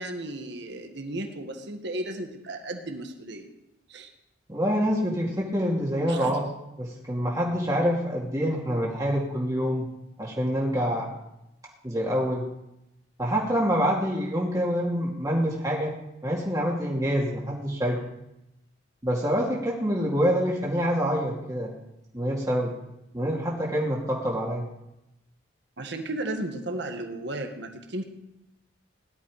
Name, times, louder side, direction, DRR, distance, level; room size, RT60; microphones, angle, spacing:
voice 1, 0.0-3.5 3.9-4.1 6.1-6.4 25.8-28.0, right 1 dB, 65° right, 5 dB, 1.6 m, -34 dB
voice 2, 4.5-6.5 6.8-9.9 10.2-11.1 11.8-12.5 13.2-15.9 16.2-18.0 19.0-21.7 22.1-22.7 23.1-24.7, equal, 20° right, -3 dB, 2.2 m, -26 dB
18.0 x 11.5 x 4.9 m, 0.88 s
head